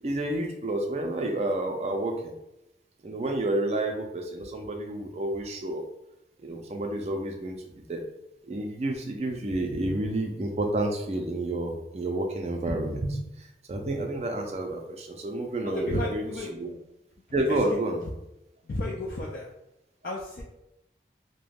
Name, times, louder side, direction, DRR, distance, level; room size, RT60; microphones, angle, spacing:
voice 1, 0.0-2.3 3.0-5.8 6.4-8.0 8.5-16.8 17.3-18.0, right 1 dB, 35° right, 2 dB, 0.4 m, -30 dB
voice 2, 15.6-16.6 17.5-17.6 18.7-19.5 20.0-20.4, left 2 dB, 50° left, -3 dB, 0.3 m, -32 dB
2.3 x 2.1 x 3.3 m, 0.88 s
head